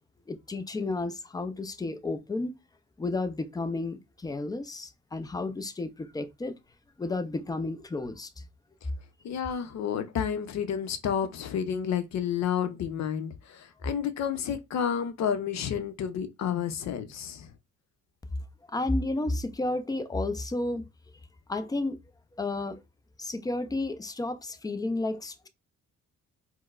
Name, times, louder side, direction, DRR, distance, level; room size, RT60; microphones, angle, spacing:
voice 1, 0.3-2.5 3.0-6.6 7.0-8.3 18.7-20.9 21.5-22.0 22.4-22.8 23.2-25.5, left 2 dB, 15° left, 0.4 m, -32 dB
voice 2, 9.2-17.5, left 8 dB, 65° left, 0.6 m, -30 dB
4.4 x 2.1 x 2.4 m
cardioid pair, 90°, 30 cm